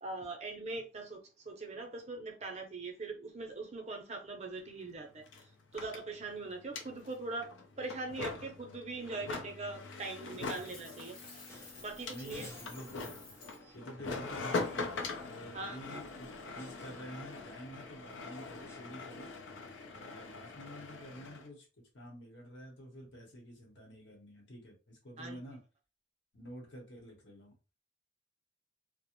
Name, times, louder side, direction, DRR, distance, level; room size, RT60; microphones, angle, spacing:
voice 1, 0.0-5.3 5.7-11.2 11.8-12.5 15.5-16.0 25.2-25.4, right 3 dB, 35° right, 0.5 m, -42 dB
sound 1, 4.6-4.7 4.9-21.5, left 3 dB, 85° left, 0.5 m, -43 dB
Coin (dropping), 10.1-13.6, left 4 dB, 45° left, 1.0 m, -54 dB
sound 2, 11.5-18.8, left 1 dB, 15° left, 0.5 m, -56 dB
voice 2, 12.1-13.2 13.7-16.3 16.5-19.3 19.9-21.7 21.9-25.6 26.3-27.5, equal, 70° left, 1.0 m, -49 dB
2.4 x 2.1 x 2.9 m
head